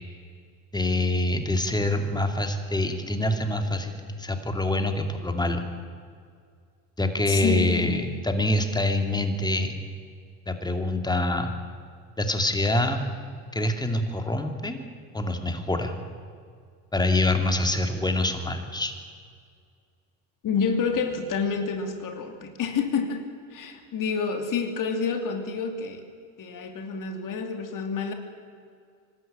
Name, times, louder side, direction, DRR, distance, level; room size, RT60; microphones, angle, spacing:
voice 1, 0.7-5.7 7.0-9.8 10.5-11.5 12.2-13.0 13.5-14.8 15.1-16.0 16.9-18.9, left 1 dB, 10° left, 6 dB, 2.7 m, -25 dB
voice 2, 7.3-8.0 20.4-23.2 23.5-26.1 26.4-28.1, left 5 dB, 50° left, 6 dB, 2.8 m, -28 dB
24.5 x 12.5 x 8.9 m, 2.2 s
supercardioid pair, 85°, 41 cm